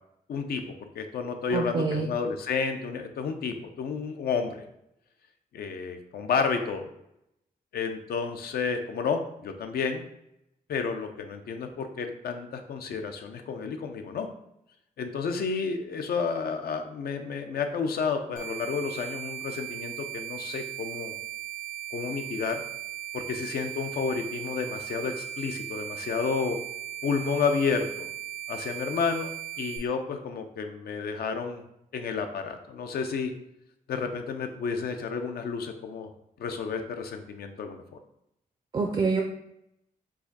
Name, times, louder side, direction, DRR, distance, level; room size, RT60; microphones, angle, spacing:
voice 1, 0.3-4.6 5.5-6.9 7.7-10.0 10.7-14.3 15.0-21.2 21.9-22.6 23.1-26.6 27.0-28.1 28.5-29.3 29.6-31.6 31.9-33.3 33.9-36.1 36.4-37.8, left 5 dB, 90° left, 6 dB, 0.5 m, -31 dB
voice 2, 1.5-2.1 38.7-39.2, right 4 dB, 35° right, 3 dB, 0.4 m, -26 dB
sound 1, 18.4-29.8, right 12 dB, 80° right, 1.2 m, -38 dB
4.7 x 2.5 x 4.0 m, 0.80 s
wide cardioid pair, 165°, 15 cm